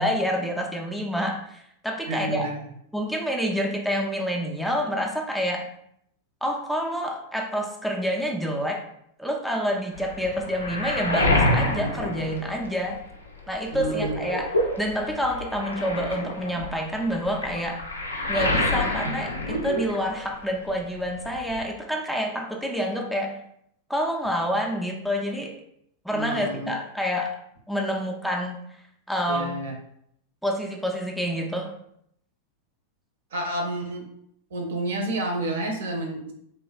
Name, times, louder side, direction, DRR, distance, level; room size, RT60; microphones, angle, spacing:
voice 1, 0.0-2.5 2.9-5.7 6.4-8.8 9.2-13.0 13.5-17.8 18.3-23.4 23.9-25.6 26.0-27.4 27.7-28.6 29.1-29.5 30.4-31.8, equal, ahead, 1 dB, 0.3 m, -28 dB
voice 2, 2.1-2.7 13.7-14.1 26.1-26.7 29.3-29.7 33.3-34.1 34.5-36.3, right 1 dB, 60° right, 2 dB, 0.6 m, -30 dB
Waves surf, 9.9-13.1 13.5-20.4 20.7-21.6, left 1 dB, 80° left, 0.4 m, -27 dB
3.1 x 2.1 x 2.2 m, 0.72 s
figure-of-eight pair, 90°, 0 cm